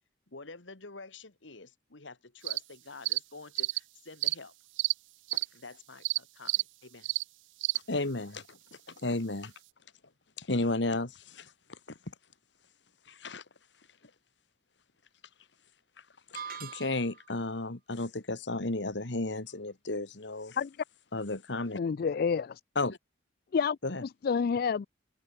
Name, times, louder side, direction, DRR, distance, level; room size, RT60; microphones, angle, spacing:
voice 1, 0.3-4.5 5.5-7.1, left 3 dB, 85° left, 2.1 m, -49 dB
sound 1, 2.4-2.6 3.1-3.2 3.5-3.8 4.2-4.3 4.8-4.9 5.3-5.5 6.0-6.2 6.5-6.6 7.0-7.2 7.6-7.8, right 21 dB, 80° right, 0.3 m, -29 dB
voice 2, 7.9-8.6 8.9-9.5 10.4-12.1 13.1-13.4 16.3-20.6 21.1-21.8 22.8-23.0 23.8-24.0, left 2 dB, 70° left, 1.8 m, -33 dB
sound 2, 16.3-17.3, right 7 dB, 50° right, 1.1 m, -42 dB
voice 3, 21.7-22.6 23.5-24.9, left 6 dB, 55° left, 0.4 m, -29 dB
head